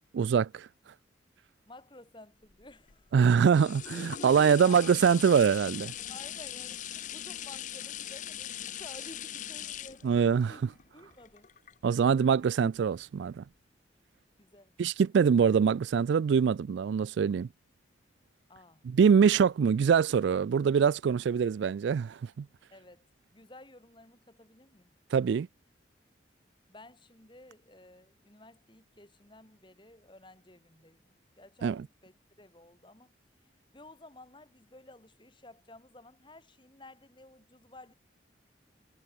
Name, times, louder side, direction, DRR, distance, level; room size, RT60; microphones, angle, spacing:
voice 1, 0.1-0.7 3.1-5.9 10.0-10.6 11.8-13.4 14.8-17.5 18.8-22.5 25.1-25.5 31.6-31.8, right 6 dB, 70° right, 0.3 m, -24 dB
voice 2, 1.7-4.8 6.1-10.6 10.9-11.5 14.4-14.7 18.5-18.9 22.7-24.9 26.7-33.1 33.7-37.9, left 2 dB, 25° left, 3.2 m, -53 dB
sound 1, 2.5-12.2 12.8-12.9, left 11 dB, 40° left, 0.6 m, -41 dB
head